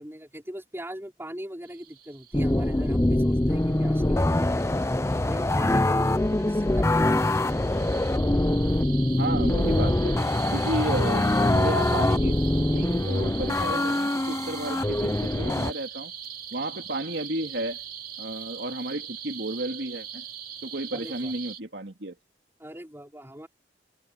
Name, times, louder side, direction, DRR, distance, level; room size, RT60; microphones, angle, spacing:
voice 1, 0.0-4.7 5.3-7.4 20.9-21.3 22.6-23.5, equal, 15° right, 4.8 m, -40 dB
sound 1, 1.6-21.6, right 8 dB, 55° right, 2.8 m, -42 dB
sound 2, 2.3-15.7, left 1 dB, 15° left, 0.5 m, -24 dB
voice 2, 9.2-10.2 10.5-12.4 12.7-16.1 16.5-17.8 18.2-20.2 20.6-22.1, right 1 dB, 70° right, 2.7 m, -32 dB
head